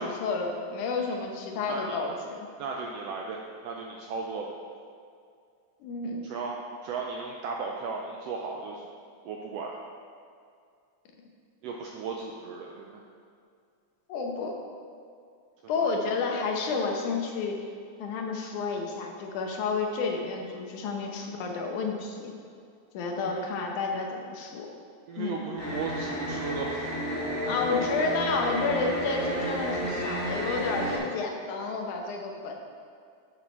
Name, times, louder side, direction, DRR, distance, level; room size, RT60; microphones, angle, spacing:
voice 1, 0.0-2.5 5.8-6.3 14.1-14.5 15.7-17.6 18.0-22.3 22.9-24.7 25.2-25.4 27.5-32.5, left 4 dB, 90° left, 2 dB, 2.4 m, -30 dB
voice 2, 1.6-2.0 2.6-4.5 6.2-6.5 6.8-8.8 9.2-9.7 11.6-13.0 15.8-16.0 21.0-21.2 23.2-23.5 25.1-26.9, right 4 dB, 90° right, 0 dB, 1.4 m, -36 dB
sound 1, 25.6-31.0, equal, 10° left, 0.9 m, -32 dB
7.4 x 6.2 x 4.4 m, 2.3 s
omnidirectional pair, 3.4 m